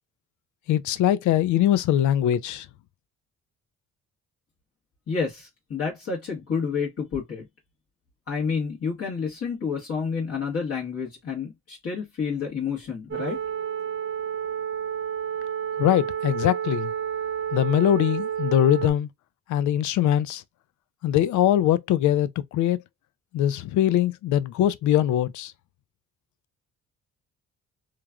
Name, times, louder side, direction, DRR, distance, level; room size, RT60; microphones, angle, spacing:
voice 1, 0.7-2.6 15.8-16.9 17.5-19.1 19.5-20.4 21.0-22.8 23.3-25.5, left 11 dB, 75° left, 0.4 m, -22 dB
voice 2, 5.1-7.4 8.3-13.4, left 5 dB, 50° left, 1.3 m, -29 dB
sound 1, 13.1-18.9, right 8 dB, 40° right, 0.8 m, -30 dB
3.0 x 2.5 x 2.2 m
cardioid pair, 90°, 30 cm